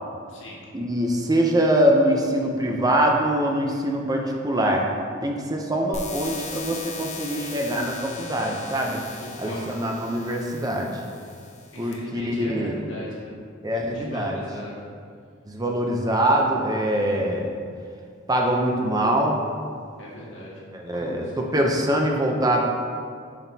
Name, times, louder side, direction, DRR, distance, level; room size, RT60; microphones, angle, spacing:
voice 1, 0.7-4.9 5.2-9.0 9.4-11.0 11.8-12.8 13.6-14.4 15.5-17.5 18.3-19.4 20.7-22.7, right 1 dB, 20° right, 0 dB, 0.6 m, -23 dB
sound 1, 5.9-11.9, left 4 dB, 35° left, 0.7 m, -39 dB
voice 2, 9.2-9.8 11.7-13.4 13.7-14.7 20.0-20.6 20.9-21.5, left 1 dB, 75° left, -5 dB, 1.6 m, -39 dB
7.2 x 6.2 x 2.7 m, 2.1 s
head